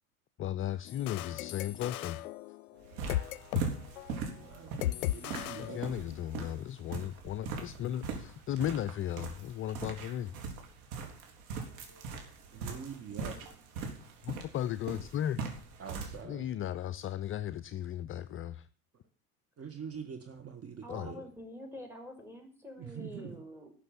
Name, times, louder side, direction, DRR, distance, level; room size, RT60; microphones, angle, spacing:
voice 1, 0.4-2.2 5.6-10.3 14.2-15.4 16.2-18.7 20.9-21.1, left 11 dB, 30° left, 16 dB, 0.5 m, -36 dB
sound 1, 0.9-3.7 4.0-4.2 4.8-6.3, left 14 dB, 75° left, 0.5 m, -37 dB
sound 2, 2.8-16.2, right 5 dB, 60° right, 3.8 m, -41 dB
voice 2, 4.4-5.8 8.6-8.8 11.5-13.4 15.8-16.5 19.6-21.3 22.8-23.4, right 7 dB, 30° right, 6 dB, 1.9 m, -45 dB
voice 3, 20.8-23.7, left 1 dB, 5° right, 5 dB, 4.8 m, -46 dB
13.0 x 6.8 x 9.2 m, 0.42 s
hypercardioid pair, 80°, 44 cm